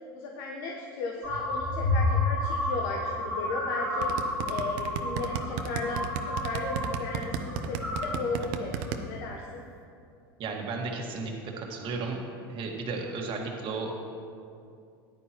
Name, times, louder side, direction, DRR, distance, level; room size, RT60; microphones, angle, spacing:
voice 1, 0.1-8.8 9.1-9.6, left 3 dB, 70° left, 0 dB, 1.1 m, -35 dB
sound 1, 1.2-7.0 7.3-8.2 8.7-9.0, left 2 dB, 10° left, 2.7 m, -30 dB
sound 2, 4.0-9.0, right 9 dB, 60° right, 0.8 m, -32 dB
voice 2, 10.4-12.2 12.5-13.9, right 4 dB, 45° right, 1 dB, 1.8 m, -34 dB
14.0 x 10.5 x 3.0 m, 2.4 s
hypercardioid pair, 100°, 12 cm